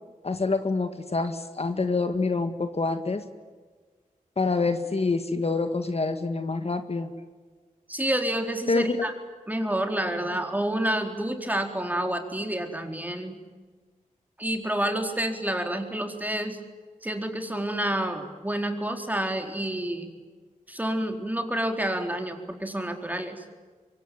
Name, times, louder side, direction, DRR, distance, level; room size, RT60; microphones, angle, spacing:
voice 1, 0.2-3.2 4.4-7.1 8.7-9.0, left 3 dB, 45° left, 8 dB, 1.9 m, -26 dB
voice 2, 7.9-9.1 9.5-13.4 14.4-16.6 17.0-20.1 20.7-23.4, right 1 dB, 10° right, 4 dB, 4.1 m, -29 dB
24.5 x 24.0 x 9.4 m, 1.4 s
wide cardioid pair, 65°, 14 cm